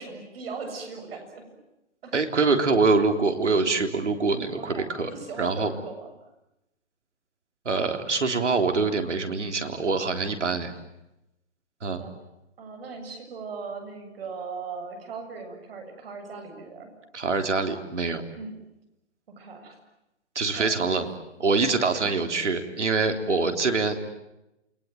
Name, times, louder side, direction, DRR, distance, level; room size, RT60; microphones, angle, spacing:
voice 1, 0.0-1.5 2.0-2.2 4.5-6.1 10.6-10.8 11.9-12.1 12.6-16.9 18.4-18.5 19.3-19.7 20.5-20.8 21.9-22.2, right 4 dB, 55° right, 6 dB, 7.5 m, -39 dB
voice 2, 2.1-5.1 5.4-5.7 7.7-10.7 11.8-12.0 17.1-18.2 20.4-21.1 21.4-24.0, right 4 dB, 90° right, 6 dB, 3.6 m, -24 dB
28.5 x 22.5 x 9.2 m, 0.90 s
hypercardioid pair, 145°, 34 cm